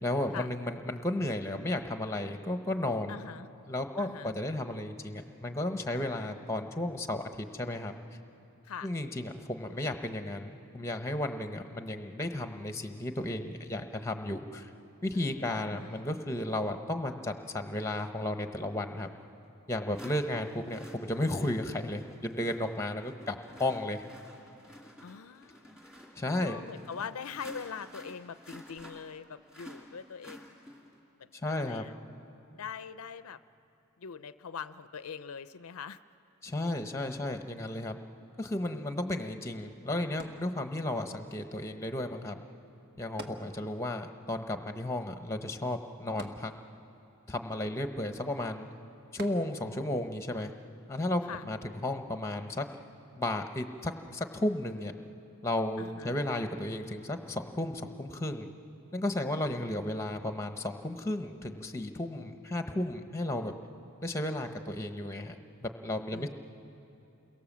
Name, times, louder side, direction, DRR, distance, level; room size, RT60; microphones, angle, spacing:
voice 1, 0.0-3.2 3.7-7.9 8.8-14.7 15.0-19.1 19.7-24.0 26.2-26.6 31.4-31.9 36.4-38.0 38.4-42.4 43.0-46.5 47.3-48.7 49.1-50.5 50.9-52.7 53.2-54.9 55.4-58.5 58.9-63.5 64.0-66.3, left 1 dB, 15° left, 7 dB, 1.0 m, -34 dB
voice 2, 3.1-3.5 4.0-4.4 8.6-8.9 15.1-16.1 25.0-25.8 26.4-30.6 31.2-31.9 32.5-33.4 34.0-36.0 43.6-43.8 51.3-51.4 55.8-56.2 66.1-66.3, left 6 dB, 75° left, 13 dB, 0.5 m, -43 dB
sound 1, 19.0-19.1 19.9-31.0, equal, 5° right, 2.7 m, -52 dB
sound 2, 40.2-41.1 43.2-44.0 44.3-44.4 46.2-47.0 49.2-49.9 50.6-50.7, right 2 dB, 45° right, 1.6 m, -48 dB
29.5 x 23.0 x 7.4 m, 2.8 s
head